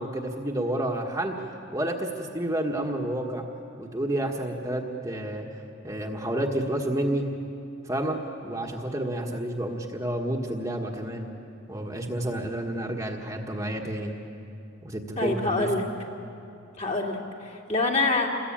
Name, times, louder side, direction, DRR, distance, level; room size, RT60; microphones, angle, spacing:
voice 1, 0.0-1.3 1.7-3.4 3.8-5.5 5.8-7.2 7.8-11.3 11.7-14.1 14.8-15.7, right 1 dB, 15° right, 0 dB, 1.5 m, -30 dB
voice 2, 15.2-15.8 16.8-18.3, left 3 dB, 35° left, -1 dB, 2.7 m, -26 dB
28.5 x 21.5 x 8.8 m, 2.7 s
head